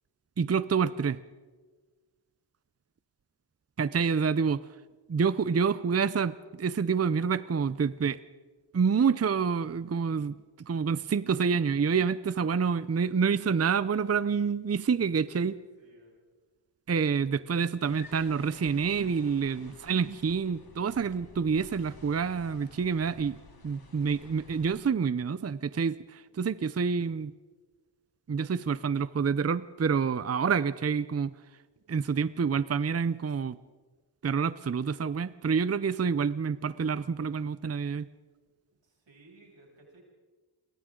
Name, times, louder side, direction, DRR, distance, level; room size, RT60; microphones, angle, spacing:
voice 1, 0.4-1.2 3.8-4.6 5.1-8.2 8.7-15.6 16.9-23.4 23.6-27.3 28.3-31.3 31.9-33.6 34.2-38.1, right 6 dB, 35° right, 15 dB, 0.6 m, -28 dB
voice 2, 15.5-16.2 38.7-40.0, right 2 dB, 90° right, -2 dB, 7.3 m, -58 dB
sound 1, 17.8-24.8, left 4 dB, 55° left, 2.7 m, -53 dB
30.0 x 23.5 x 3.8 m, 1.4 s
wide cardioid pair, 100°, 43 cm